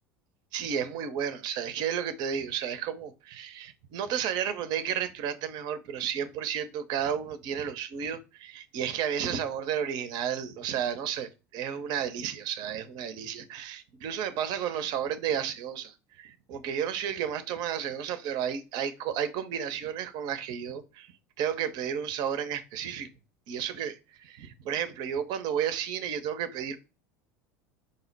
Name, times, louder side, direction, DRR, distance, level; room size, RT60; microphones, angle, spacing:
voice 1, 0.5-21.1 21.4-23.1 23.5-23.9 24.3-26.8, right 8 dB, 55° right, 0.6 m, -32 dB
5.3 x 2.1 x 3.9 m
hypercardioid pair, 85°, 8 cm